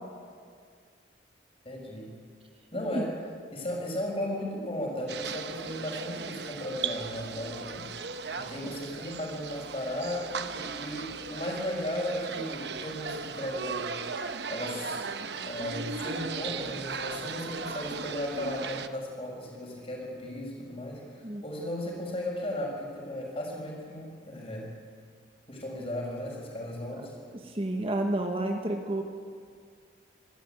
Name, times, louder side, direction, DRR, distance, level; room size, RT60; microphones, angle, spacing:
voice 1, 1.6-2.1 2.7-3.1 3.5-7.9 8.4-13.9 14.5-15.0 15.4-24.7 25.5-27.1, left 1 dB, 30° left, -1 dB, 6.3 m, -35 dB
sound 1, 5.1-18.9, right 5 dB, 60° right, 1.0 m, -37 dB
voice 2, 8.2-8.8 21.2-21.4 27.0-27.1 27.4-29.0, right 1 dB, 30° right, 4 dB, 1.4 m, -31 dB
26.0 x 14.0 x 9.3 m, 2.1 s
head